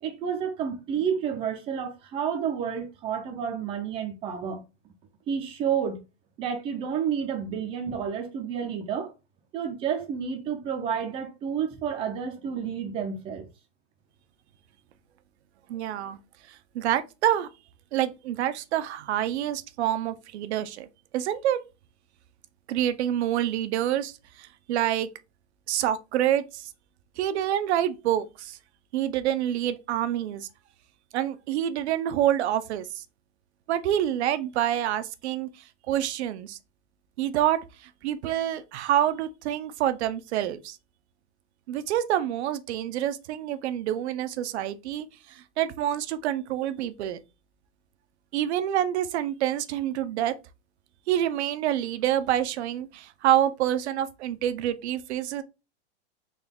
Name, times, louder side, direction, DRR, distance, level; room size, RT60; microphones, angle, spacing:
voice 1, 0.0-4.6 5.3-6.0 6.4-9.1 9.5-13.4, right 7 dB, 15° right, 0.4 m, -30 dB
voice 2, 15.7-16.2 16.5-17.5 17.9-20.9 21.1-21.6 22.7-25.1 25.7-26.7 27.2-28.6 28.9-30.5 31.1-33.0 33.7-35.5 35.9-36.6 37.2-40.8 41.7-47.2 48.3-50.3 51.1-55.4, right 11 dB, 80° right, 0.6 m, -27 dB
3.9 x 2.3 x 3.4 m
supercardioid pair, 160°, 33 cm